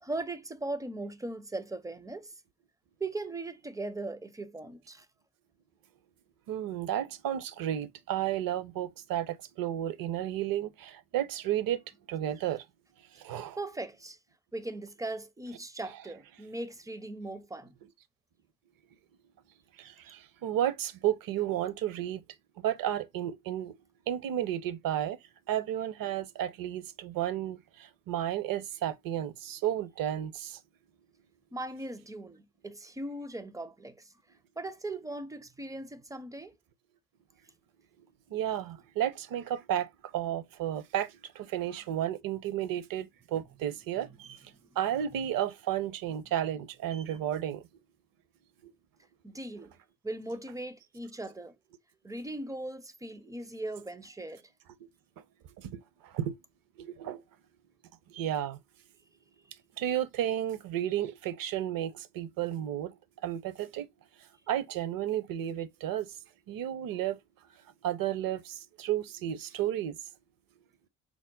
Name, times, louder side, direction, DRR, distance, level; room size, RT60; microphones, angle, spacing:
voice 1, 0.0-2.3 3.0-5.1 13.6-14.2 14.5-17.8 31.5-34.1 34.6-36.5 49.2-49.7 50.0-51.5 52.0-54.5, right 2 dB, 10° right, 0.5 m, -39 dB
voice 2, 6.5-12.7 13.1-13.6 15.8-15.9 19.8-22.2 22.6-23.8 24.1-25.2 25.5-30.6 38.3-47.6 48.6-48.7 55.6-56.3 56.8-57.2 58.1-58.6 59.8-63.0 63.2-63.9 64.2-66.2 66.5-67.2 67.8-70.0, right 11 dB, 50° right, 0.7 m, -33 dB
4.8 x 2.1 x 3.7 m
hypercardioid pair, 70°, 42 cm